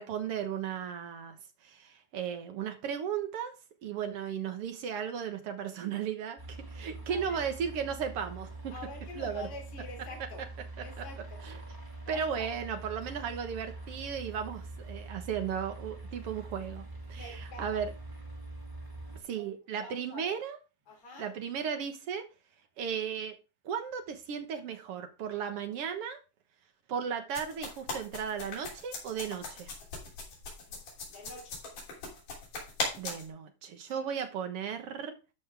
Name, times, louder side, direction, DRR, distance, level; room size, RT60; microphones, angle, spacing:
voice 1, 0.0-1.4 1.6-3.5 3.8-8.7 9.2-9.5 10.8-11.1 11.4-11.6 12.1-16.8 17.1-17.9 19.2-20.6 21.2-22.2 22.8-23.3 23.6-26.2 26.9-29.7 33.0-35.2, right 7 dB, 60° right, 1.7 m, -35 dB
sound 1, 6.4-19.2, right 2 dB, 20° right, 0.6 m, -44 dB
voice 2, 7.1-7.4 8.7-10.4 10.8-11.4 12.0-12.5 17.1-17.8 19.4-19.5 19.8-20.4 20.9-21.3 30.6-30.8 31.1-31.6 32.5-32.7 33.9-34.1, left 2 dB, 45° left, 3.8 m, -47 dB
sound 2, 27.3-33.3, left 3 dB, 70° left, 4.8 m, -38 dB
13.0 x 5.4 x 3.5 m
omnidirectional pair, 3.8 m